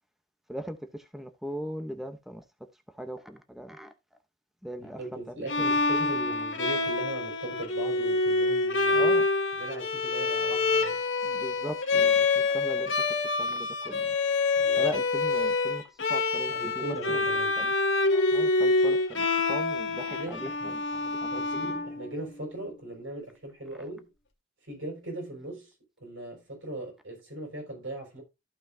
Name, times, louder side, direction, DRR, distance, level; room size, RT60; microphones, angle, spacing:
voice 1, 0.5-2.4 3.0-3.9 4.6-5.4 8.9-9.3 11.2-13.0 13.4-14.1 14.8-15.8 16.1-17.3 17.6-17.7 18.1-21.8, equal, ahead, 0.7 m, -39 dB
voice 2, 4.8-9.1 9.6-11.0 14.6-15.0 16.5-17.6 20.1-20.8 21.1-24.1 24.6-25.7 26.0-28.2, right 2 dB, 80° right, 5.8 m, -39 dB
Bowed string instrument, 5.5-22.4, left 3 dB, 75° left, 1.8 m, -26 dB
14.5 x 5.7 x 2.6 m
head